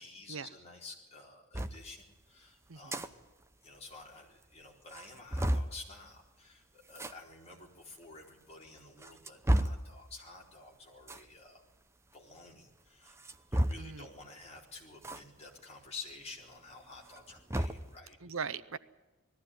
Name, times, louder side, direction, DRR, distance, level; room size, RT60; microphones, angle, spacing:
voice 1, 0.0-3.2 3.6-11.6 12.1-13.2 13.5-18.2, left 3 dB, 30° left, -1 dB, 4.3 m, -51 dB
sound 1, 1.5-1.8 2.7-3.1 3.4-3.5 3.8-3.9 4.4-4.5 4.9-5.7 6.9-7.1 8.0-8.1 8.8-9.9 11.0-11.3 13.1-14.0 15.0-15.2 15.6-15.7 17.0-17.9, right 1 dB, 10° right, 0.7 m, -32 dB
voice 2, 2.7-3.0 13.8-14.1 18.2-18.8, right 6 dB, 65° right, 14 dB, 0.7 m, -40 dB
19.5 x 15.0 x 9.8 m, 1.2 s
head